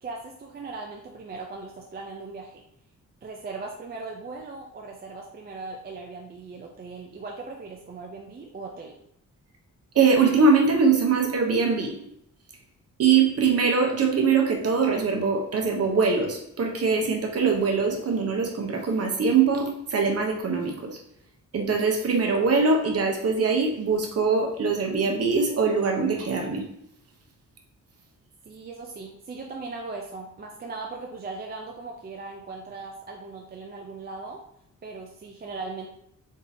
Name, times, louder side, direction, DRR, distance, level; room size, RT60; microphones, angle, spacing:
voice 1, 0.0-2.6 3.2-9.0 28.5-34.4 34.8-35.9, right 3 dB, 30° right, 0 dB, 0.4 m, -38 dB
voice 2, 9.9-12.0 13.0-21.0 21.5-26.6, right 5 dB, 50° right, 2 dB, 0.8 m, -22 dB
3.6 x 2.7 x 4.0 m, 0.75 s
wide cardioid pair, 160°, 32 cm